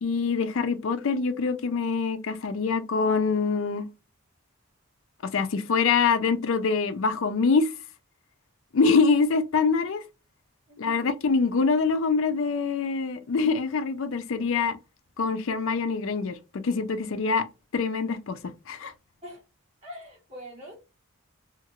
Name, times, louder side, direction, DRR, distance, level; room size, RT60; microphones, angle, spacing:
voice 1, 0.0-3.9 5.2-7.7 8.7-10.0 10.8-14.8 15.2-17.4 17.7-18.9, left 4 dB, 65° left, 0.4 m, -25 dB
voice 2, 10.7-11.1 19.2-19.4 19.8-20.7, equal, 30° right, 1.2 m, -44 dB
2.8 x 2.4 x 2.9 m
head